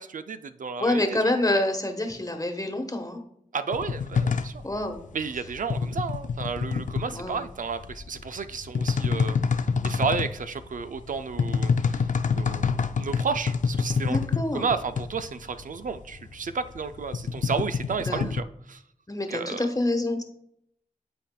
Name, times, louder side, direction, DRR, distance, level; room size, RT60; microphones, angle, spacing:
voice 1, 0.0-1.2 3.5-4.6 5.1-9.4 9.8-14.2 14.5-18.8 19.3-19.7, right 5 dB, 70° right, 10 dB, 0.4 m, -32 dB
voice 2, 0.8-3.2 4.6-5.0 7.1-7.4 14.0-14.7 18.0-18.3 19.1-20.2, left 1 dB, 25° left, 5 dB, 1.1 m, -27 dB
sound 1, 3.7-18.4, left 5 dB, 65° left, 0.4 m, -27 dB
11.0 x 4.2 x 2.2 m, 0.74 s
cardioid pair, 40°, 14 cm